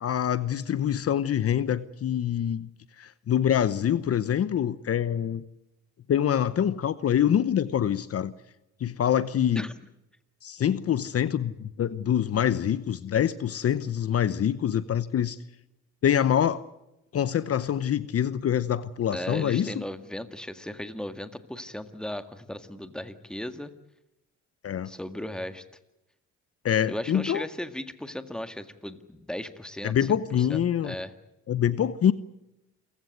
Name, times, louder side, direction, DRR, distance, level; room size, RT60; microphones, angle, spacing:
voice 1, 0.0-2.7 3.0-5.4 6.1-8.3 8.8-9.7 10.4-15.4 16.0-16.6 17.1-19.8 24.6-24.9 26.6-27.4 29.8-30.9 31.5-32.1, left 9 dB, 50° left, 15 dB, 0.9 m, -25 dB
voice 2, 19.1-23.7 24.9-25.6 26.9-31.1, left 1 dB, 5° left, 9 dB, 1.8 m, -36 dB
28.5 x 16.0 x 9.5 m, 0.91 s
cardioid pair, 90°, 30 cm